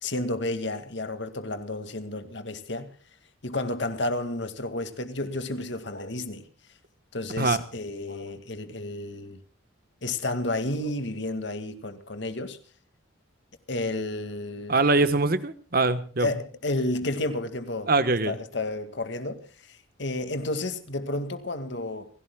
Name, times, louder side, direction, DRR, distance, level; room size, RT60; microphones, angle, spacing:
voice 1, 0.0-2.9 3.4-6.5 7.1-9.4 10.0-12.6 13.7-14.8 16.2-17.9 18.2-19.4 19.7-22.1, left 2 dB, 60° left, 2.1 m, -31 dB
voice 2, 14.7-16.3 17.9-18.4, right 3 dB, 45° right, 1.2 m, -23 dB
30.0 x 16.5 x 2.3 m
head